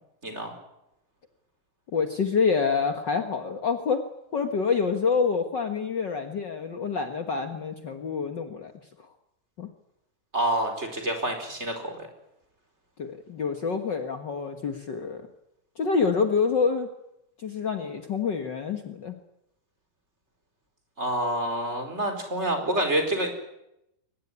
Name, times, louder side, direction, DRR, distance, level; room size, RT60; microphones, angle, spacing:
voice 1, 0.2-0.5 10.3-12.1 21.0-23.3, right 1 dB, 15° right, 5 dB, 4.4 m, -27 dB
voice 2, 1.9-4.0 4.3-8.7 9.6-9.7 13.0-15.2 15.8-16.9 17.4-19.1, left 5 dB, 75° left, 6 dB, 1.0 m, -27 dB
23.5 x 19.0 x 9.9 m, 0.85 s
omnidirectional pair, 4.4 m